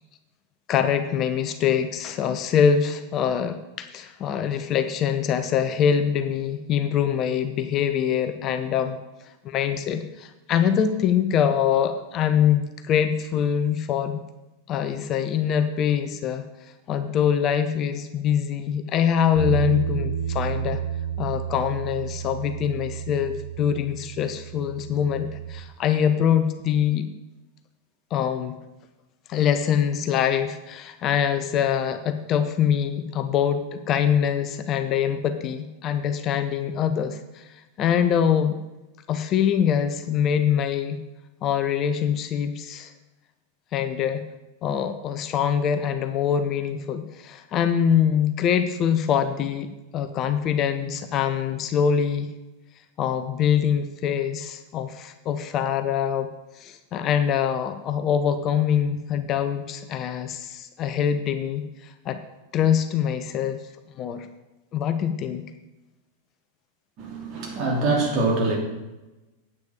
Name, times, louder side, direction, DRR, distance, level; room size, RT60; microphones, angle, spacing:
voice 1, 0.7-9.0 9.4-14.2 14.7-16.4 16.9-20.8 21.2-27.1 28.1-28.6 29.3-37.5 37.8-38.6 39.1-41.0 41.4-42.9 43.7-44.2 44.6-52.3 53.0-56.3 56.6-62.2 62.5-63.6 64.0-64.3 64.7-65.4, left 8 dB, 35° left, 9 dB, 0.6 m, -24 dB
Bass guitar, 19.4-25.6, right 7 dB, 70° left, 1.7 m, -31 dB
voice 2, 67.0-68.6, right 3 dB, 40° right, 0 dB, 2.9 m, -24 dB
9.6 x 8.4 x 4.9 m, 1.1 s
figure-of-eight pair, 90°, 0 cm